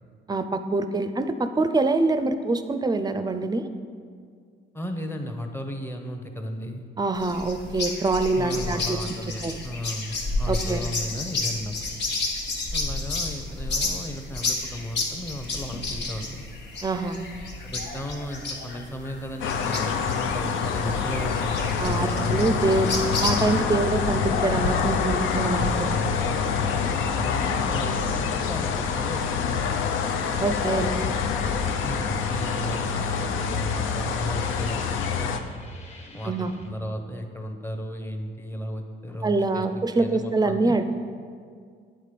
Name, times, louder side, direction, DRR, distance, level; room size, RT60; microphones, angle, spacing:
voice 1, 0.3-3.7 7.0-9.0 9.4-9.6 10.5-10.8 16.8-17.2 21.8-22.9 23.2-25.7 30.4-30.9 36.2-36.5 39.2-40.8, right 3 dB, 20° right, 9 dB, 0.5 m, -25 dB
voice 2, 4.7-6.9 8.3-11.7 12.7-16.4 17.6-23.2 25.4-26.6 27.0-29.9 31.0-31.2 31.4-35.4 36.1-40.8, equal, 10° left, 5 dB, 0.8 m, -35 dB
sound 1, 7.1-23.6, left 3 dB, 60° left, 1.2 m, -32 dB
sound 2, 19.4-35.4, left 6 dB, 80° left, 0.5 m, -26 dB
sound 3, 31.5-36.7, left 1 dB, 30° left, 1.2 m, -44 dB
9.2 x 4.0 x 5.1 m, 2.1 s
cardioid pair, 90°, 20 cm